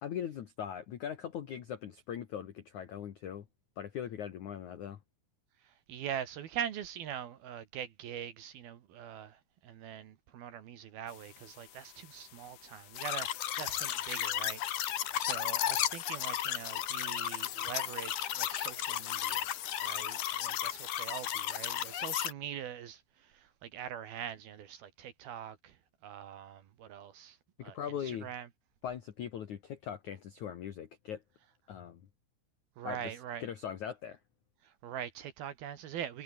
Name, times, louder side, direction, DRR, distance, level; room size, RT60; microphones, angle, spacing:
voice 1, 0.0-3.5 3.8-5.0 27.6-28.3 28.8-31.2 31.7-32.0 32.8-33.1 33.4-34.2, left 9 dB, 65° left, 2.0 m, -40 dB
voice 2, 5.6-25.8 26.0-28.5 32.8-33.5 34.6-36.2, right 9 dB, 60° right, 3.0 m, -43 dB
sound 1, 12.9-22.3, left 12 dB, 80° left, 1.8 m, -34 dB
omnidirectional pair, 5.6 m